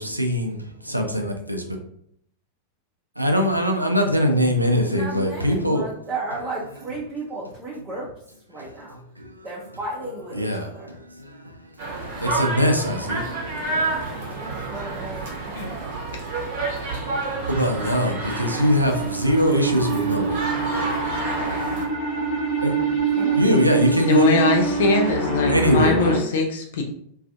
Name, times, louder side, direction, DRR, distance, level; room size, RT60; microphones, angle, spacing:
voice 1, 0.0-1.6 3.2-5.9 9.2-9.3 10.4-10.9 11.3-11.4 12.2-13.2 17.5-20.4 22.6-22.7 23.3-24.2 25.5-26.0, equal, 85° right, 4 dB, 0.4 m, -21 dB
voice 2, 4.8-8.1 8.5-9.0 9.4-10.9 14.4-16.0 23.2-23.4, right 2 dB, 15° right, -6 dB, 0.6 m, -34 dB
sound 1, 11.8-21.9, right 3 dB, 50° right, 0.7 m, -29 dB
sound 2, 17.0-26.2, right 5 dB, 45° left, 1.1 m, -26 dB
voice 3, 24.1-26.8, left 3 dB, 60° left, 3 dB, 0.4 m, -21 dB
2.4 x 2.3 x 2.5 m, 0.67 s
figure-of-eight pair, 90°, 0 cm